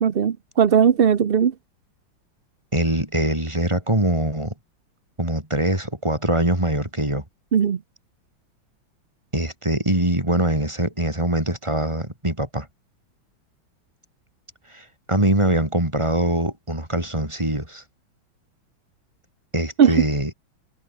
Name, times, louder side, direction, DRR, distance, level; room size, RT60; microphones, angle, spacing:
voice 1, 0.0-1.5 7.5-7.8 19.8-20.0, right 7 dB, 55° right, 0.6 m, -18 dB
voice 2, 2.7-4.5 5.2-7.2 9.3-12.7 14.7-17.8 19.5-20.3, right 1 dB, 15° right, 4.5 m, -23 dB
omnidirectional pair, 2.2 m